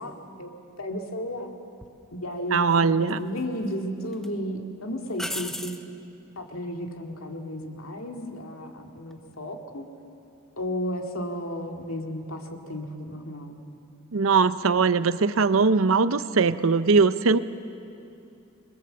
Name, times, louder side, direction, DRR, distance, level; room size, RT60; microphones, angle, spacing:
voice 1, 0.0-1.5 2.1-5.7 6.4-9.9 10.6-13.6, equal, 85° left, 3 dB, 2.3 m, -33 dB
sound 1, 1.8-2.0 3.1-3.7 4.1-4.3 5.2-5.9 9.0-9.3, left 1 dB, ahead, 0.8 m, -35 dB
voice 2, 2.5-3.2 14.1-17.4, right 4 dB, 80° right, 14 dB, 0.7 m, -21 dB
27.0 x 21.0 x 7.7 m, 2.6 s
head